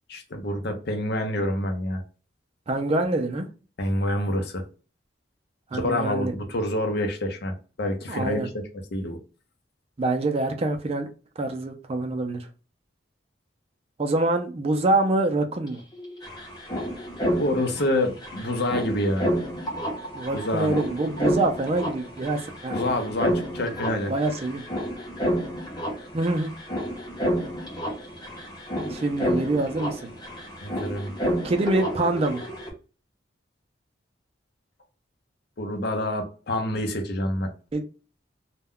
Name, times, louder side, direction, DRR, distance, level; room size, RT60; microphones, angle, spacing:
voice 1, 0.1-2.0 3.8-4.6 5.7-8.4 8.9-9.2 17.4-19.3 20.3-20.7 22.7-24.1 30.6-31.1 35.6-37.5, left 1 dB, 60° left, 0.6 m, -27 dB
voice 2, 2.7-3.5 5.7-6.3 8.1-8.5 10.0-11.1 11.4-12.5 14.0-15.8 20.1-22.8 24.1-24.6 26.1-26.5 28.8-30.1 31.4-32.4 37.7-37.8, right 2 dB, 35° right, 0.4 m, -25 dB
sound 1, 15.7-15.8 15.9-32.7, equal, 20° left, 0.7 m, -30 dB
2.2 x 2.1 x 3.6 m
head